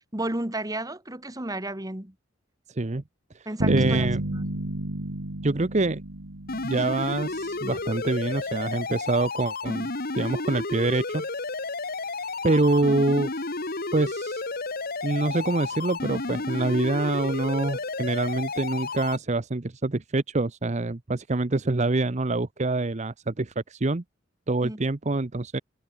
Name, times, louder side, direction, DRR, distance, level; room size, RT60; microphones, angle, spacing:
voice 1, 0.1-2.1 3.5-4.6 24.6-24.8, right 1 dB, 20° right, 2.0 m, -33 dB
voice 2, 2.7-3.0 3.3-4.2 5.4-6.0 6.6-11.2 12.4-13.3 13.9-14.4 15.0-24.0 24.5-25.6, right 2 dB, 35° right, 0.8 m, -26 dB
Bass guitar, 3.6-7.4, right 1 dB, 80° right, 2.3 m, -30 dB
sound 1, 6.5-19.2, left 3 dB, 50° left, 2.2 m, -32 dB
head